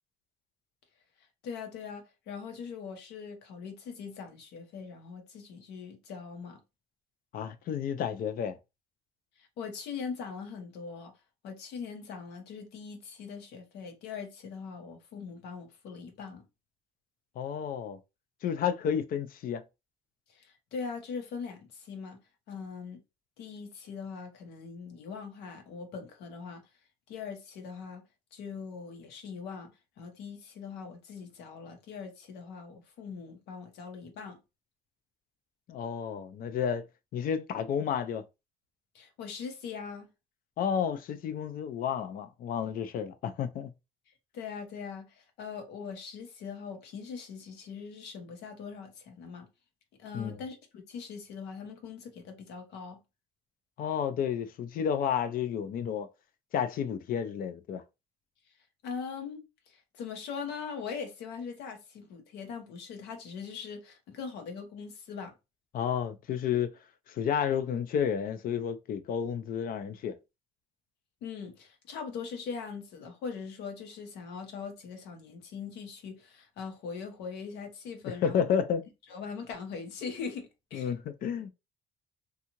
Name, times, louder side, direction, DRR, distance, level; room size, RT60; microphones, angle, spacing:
voice 1, 1.4-6.6 9.4-11.1 11.4-16.4 20.3-22.2 22.5-23.0 23.4-26.6 27.1-28.0 28.3-29.7 30.0-34.4 38.9-40.1 44.3-49.5 50.0-53.0 58.8-65.3 71.2-78.4 79.1-80.9, left 5 dB, 80° left, 0.9 m, -41 dB
voice 2, 7.3-8.6 17.4-18.0 18.4-19.6 35.7-36.9 37.1-38.2 40.6-43.7 50.1-50.4 53.8-56.1 56.5-57.8 65.7-66.7 67.1-70.1 78.2-78.8 80.7-81.5, left 8 dB, 60° left, 0.5 m, -31 dB
2.7 x 2.4 x 2.9 m
cardioid pair, 110°, 17 cm